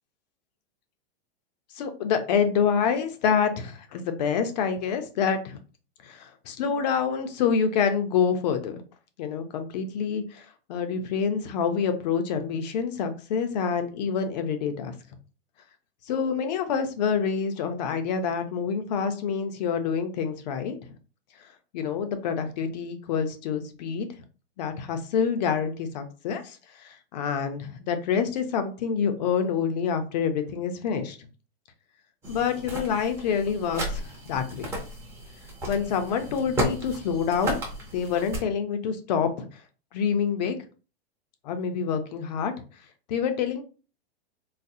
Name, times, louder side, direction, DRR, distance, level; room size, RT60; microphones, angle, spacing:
voice 1, 1.8-5.6 6.0-8.8 9.2-15.0 16.1-20.9 21.7-24.1 24.6-31.2 32.3-34.7 35.7-37.6 37.9-39.5 39.9-40.6 41.4-42.5 43.1-43.6, left 6 dB, 45° left, 8 dB, 0.5 m, -27 dB
sound 1, 32.2-38.4, equal, 10° right, 0.6 m, -33 dB
4.0 x 2.0 x 2.6 m, 0.35 s
supercardioid pair, 165°, 31 cm